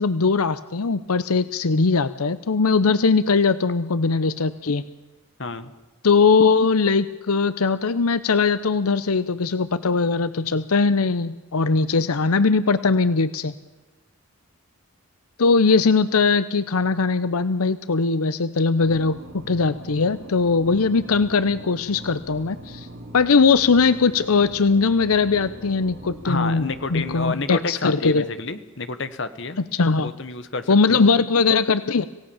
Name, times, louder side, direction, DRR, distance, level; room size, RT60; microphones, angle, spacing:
voice 1, 0.0-4.8 6.0-13.5 15.4-22.9 23.1-28.3 29.7-30.1 30.7-32.1, left 4 dB, 90° left, 14 dB, 0.7 m, -20 dB
voice 2, 5.4-5.7 26.2-29.6 30.0-31.1, left 3 dB, 55° left, 11 dB, 1.4 m, -29 dB
sound 1, 18.8-27.3, right 1 dB, 65° right, 5.1 m, -41 dB
27.0 x 17.0 x 7.2 m, 1.2 s
head